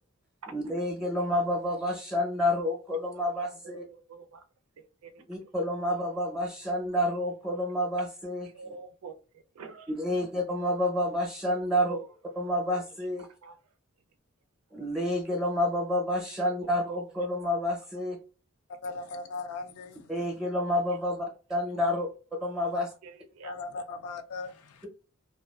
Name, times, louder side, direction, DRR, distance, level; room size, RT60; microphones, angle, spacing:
voice 1, 0.5-3.8 5.3-8.5 9.9-12.0 12.4-13.3 14.7-18.2 20.1-22.1 22.4-22.9, left 1 dB, 5° right, 0.6 m, -29 dB
voice 2, 3.2-4.4 4.8-5.5 8.5-10.0 11.8-12.1 12.7-12.8 13.2-13.5 16.4-17.0 18.8-18.9 21.8-22.0 23.0-23.8, right 5 dB, 75° right, 0.4 m, -47 dB
voice 3, 18.8-20.0 23.4-24.8, left 3 dB, 85° left, 0.4 m, -38 dB
2.4 x 2.3 x 2.3 m
head